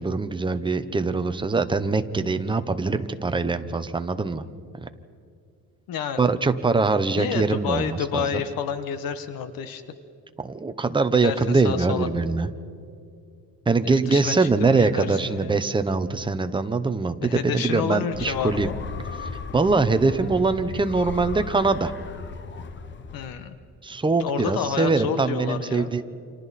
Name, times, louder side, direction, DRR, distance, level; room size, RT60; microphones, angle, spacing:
voice 1, 0.0-4.4 4.8-4.9 6.2-8.4 10.4-12.5 13.7-18.7 19.5-21.9 23.8-26.0, right 3 dB, 15° right, 9 dB, 0.8 m, -23 dB
voice 2, 5.9-6.3 7.1-9.8 11.2-12.1 13.8-15.6 17.2-18.7 23.1-23.6 24.2-25.9, left 7 dB, 70° left, 10 dB, 1.3 m, -29 dB
sound 1, 18.1-23.3, left 5 dB, 30° left, 0.9 m, -36 dB
30.0 x 27.0 x 4.2 m, 2.4 s
cardioid pair, 150°, 36 cm